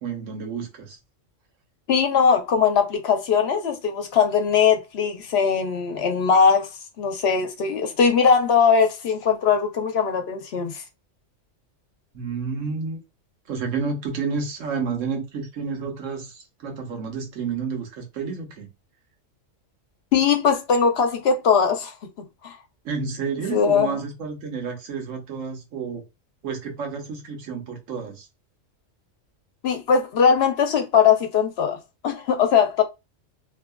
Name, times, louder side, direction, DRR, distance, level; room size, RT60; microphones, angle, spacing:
voice 1, 0.0-1.0 12.1-13.0 13.5-18.7 22.8-26.0 26.4-28.3, right 5 dB, 75° right, 1.2 m, -30 dB
voice 2, 1.9-6.7 7.0-10.8 20.1-21.9 22.4-22.5 23.5-24.0 29.6-31.8 32.0-32.8, left 6 dB, 60° left, 0.8 m, -20 dB
2.8 x 2.3 x 2.2 m
omnidirectional pair, 1.4 m